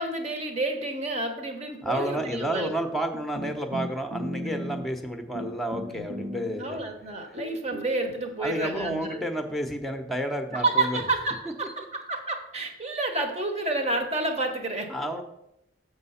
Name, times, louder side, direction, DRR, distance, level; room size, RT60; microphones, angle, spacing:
voice 1, 0.0-2.7 5.9-6.1 6.6-9.2 10.5-14.9, right 2 dB, 35° right, 5 dB, 1.2 m, -29 dB
voice 2, 1.8-6.8 8.4-11.0 14.9-15.2, right 1 dB, ahead, 5 dB, 0.8 m, -30 dB
sound 1, 3.3-5.1 5.3-6.9 7.4-10.0, left 1 dB, 75° right, 1.5 m, -37 dB
7.4 x 4.9 x 5.7 m, 0.83 s
head